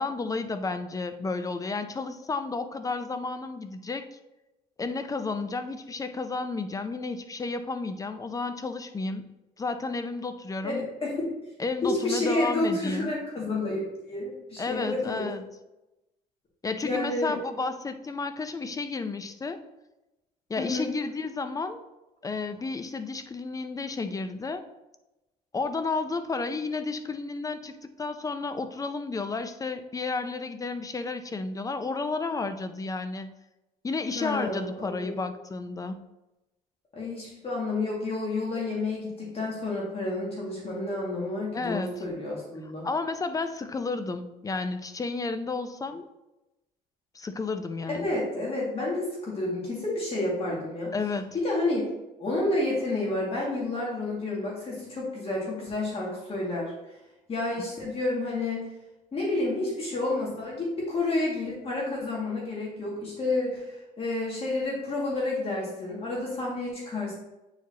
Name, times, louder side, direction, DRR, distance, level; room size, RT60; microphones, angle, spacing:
voice 1, 0.0-4.1 4.8-9.3 9.6-10.9 11.6-13.1 14.6-15.4 16.6-19.7 20.5-21.8 22.2-24.7 25.5-33.3 33.8-36.0 41.5-41.9 42.8-46.1 47.1-48.1 50.9-51.3, left 3 dB, 20° left, 9 dB, 0.5 m, -32 dB
voice 2, 11.8-15.3 16.8-17.3 20.6-20.9 34.1-35.2 36.9-42.9 47.9-50.9 51.3-51.8 52.2-56.7 57.3-58.7 59.1-67.1, left 2 dB, 35° left, -4 dB, 2.0 m, -30 dB
8.5 x 4.7 x 2.8 m, 0.98 s
cardioid pair, 110°, 17 cm